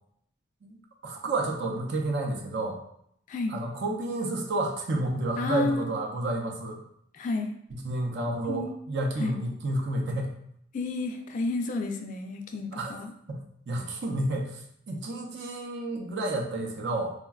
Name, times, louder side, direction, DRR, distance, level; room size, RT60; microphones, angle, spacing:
voice 1, 1.0-2.8 3.5-6.8 7.7-10.4 12.7-13.0 13.3-17.1, right 2 dB, 70° right, 1 dB, 0.5 m, -30 dB
voice 2, 3.3-3.6 5.4-5.9 7.1-7.6 8.5-8.7 9.2-9.4 10.7-13.1, left 3 dB, 45° left, 5 dB, 0.3 m, -31 dB
3.5 x 2.1 x 2.3 m, 0.70 s
head